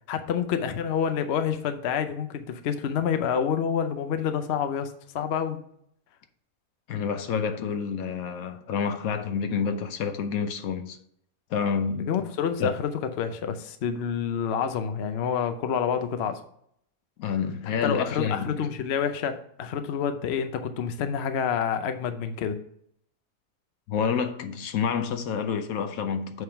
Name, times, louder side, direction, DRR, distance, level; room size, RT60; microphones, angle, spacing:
voice 1, 0.1-5.6 12.1-12.9 13.2-16.4 17.8-22.6, left 7 dB, 55° left, 0.8 m, -28 dB
voice 2, 6.9-11.0 11.5-12.1 12.6-12.7 17.2-18.7 23.9-26.4, left 6 dB, 75° left, 1.2 m, -28 dB
7.7 x 3.6 x 5.7 m
omnidirectional pair, 1.5 m